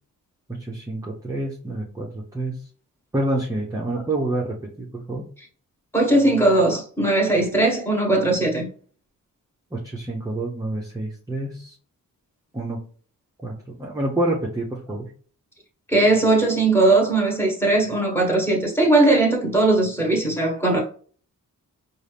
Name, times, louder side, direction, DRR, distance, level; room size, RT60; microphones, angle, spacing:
voice 1, 0.5-2.6 3.1-5.3 9.7-11.8 12.5-12.8 13.4-15.1, right 1 dB, 10° right, 0.6 m, -28 dB
voice 2, 5.9-8.7 15.9-20.8, right 2 dB, 5° left, 1.2 m, -19 dB
5.3 x 2.4 x 3.3 m
wide cardioid pair, 170°, 34 cm